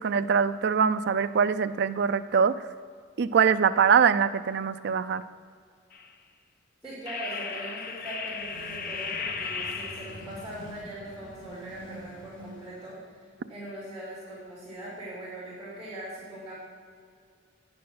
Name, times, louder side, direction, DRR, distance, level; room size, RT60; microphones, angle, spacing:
voice 1, 0.0-2.5 3.2-5.2, right 6 dB, 60° right, 12 dB, 0.4 m, -23 dB
sound 1, 5.9-6.1 7.1-10.4, left 5 dB, 50° left, 0.6 m, -36 dB
voice 2, 6.8-13.1 13.5-16.5, right 1 dB, 5° right, -9 dB, 2.8 m, -41 dB
sound 2, 7.8-13.1, equal, 80° left, 1.6 m, -47 dB
9.3 x 6.2 x 6.2 m, 2.1 s
head